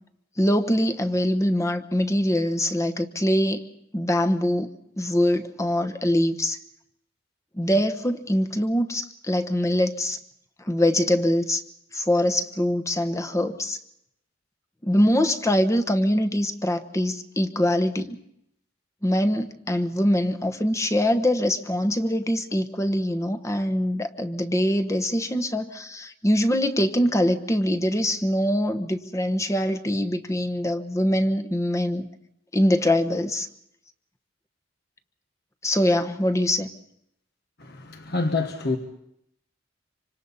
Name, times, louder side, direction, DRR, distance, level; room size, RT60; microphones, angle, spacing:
voice 1, 0.4-3.6 3.9-4.7 5.0-6.6 7.5-10.2 10.7-11.6 11.9-13.8 14.8-18.2 19.0-32.1 32.5-33.5 35.6-36.7, left 1 dB, 15° left, 7 dB, 1.1 m, -23 dB
voice 2, 37.6-38.8, left 3 dB, 60° left, 5 dB, 1.5 m, -27 dB
26.5 x 25.5 x 4.2 m, 0.75 s
head